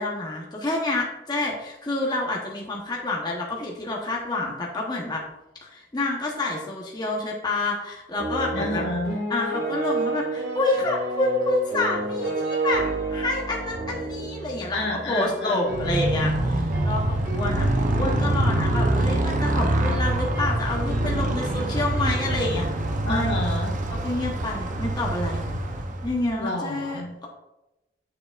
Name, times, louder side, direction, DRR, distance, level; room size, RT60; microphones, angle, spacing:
voice 1, 0.0-5.2 5.6-8.8 9.3-12.8 13.1-14.8 15.1-17.7 18.0-22.7 23.0-23.4 23.9-25.4 26.0-27.3, left 2 dB, 25° left, -1 dB, 0.9 m, -28 dB
sound 1, 8.2-15.1, right 2 dB, 85° right, 1.5 m, -29 dB
voice 2, 8.5-9.3 14.7-15.9 23.0-23.7 26.4-27.1, left 2 dB, 75° left, -1 dB, 1.6 m, -30 dB
sound 2, 15.2-18.2 19.8-21.3, right 1 dB, 65° right, 1.9 m, -39 dB
Motorcycle, 15.7-26.3, right 1 dB, 45° right, 0.7 m, -25 dB
7.5 x 6.6 x 2.4 m, 0.95 s
head